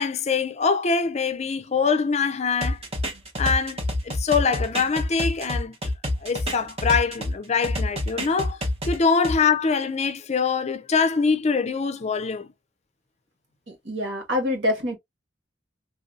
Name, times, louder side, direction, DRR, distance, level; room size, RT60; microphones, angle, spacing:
voice 1, 0.0-2.8 3.4-5.9 6.2-8.6 8.9-12.5, left 5 dB, 35° left, 0.5 m, -24 dB
sound 1, 2.6-7.3 7.6-9.4, left 1 dB, 30° right, 0.9 m, -27 dB
voice 2, 13.7-15.0, left 1 dB, 65° right, 1.6 m, -26 dB
3.4 x 2.6 x 2.5 m
head